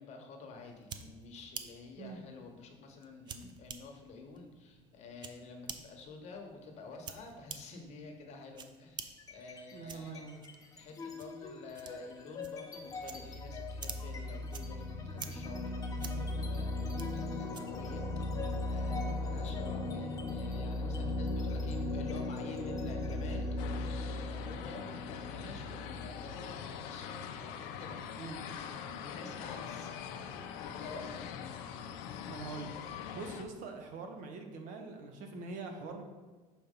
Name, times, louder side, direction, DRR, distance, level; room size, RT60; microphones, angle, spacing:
voice 1, 0.0-10.2 10.7-28.4 28.8-31.2, left 4 dB, 50° left, 3 dB, 1.0 m, -49 dB
sound 1, 0.6-18.0, right 7 dB, 30° right, 0.4 m, -51 dB
sound 2, 9.2-9.7 10.1-26.7, left 2 dB, 25° left, 0.6 m, -38 dB
voice 2, 9.7-10.4 28.2-28.6 32.3-32.7 33.1-36.0, right 4 dB, 60° right, 4 dB, 0.8 m, -44 dB
sound 3, 23.6-33.4, left 8 dB, 90° left, 0.5 m, -43 dB
6.3 x 2.9 x 5.2 m, 1.3 s
cardioid pair, 135°, 15 cm